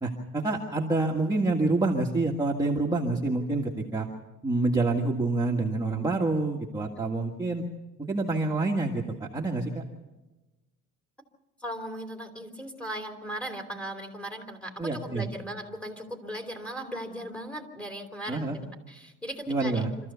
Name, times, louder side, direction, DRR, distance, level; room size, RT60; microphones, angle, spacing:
voice 1, 0.0-4.1 4.4-7.6 8.0-9.8 14.8-15.3 18.3-18.6 19.5-19.9, right 2 dB, 10° right, -1 dB, 1.7 m, -27 dB
voice 2, 11.6-20.1, equal, 5° left, 2 dB, 3.1 m, -38 dB
26.0 x 14.0 x 7.0 m, 1.1 s
cardioid pair, 120°, 30 cm